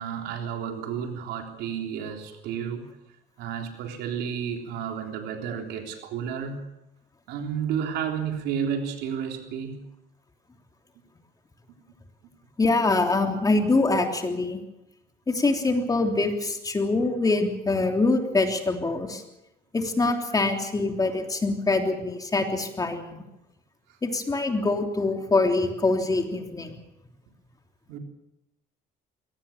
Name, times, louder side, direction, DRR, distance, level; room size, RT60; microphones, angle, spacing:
voice 1, 0.0-2.9 3.4-6.7 7.3-9.8 27.9-28.0, right 7 dB, 90° right, 4 dB, 3.6 m, -31 dB
voice 2, 12.6-14.6 15.3-19.2 19.7-23.2 24.0-26.7, left 3 dB, 20° left, 4 dB, 3.3 m, -24 dB
22.0 x 18.0 x 7.3 m, 0.91 s
cardioid pair, 110°, 17 cm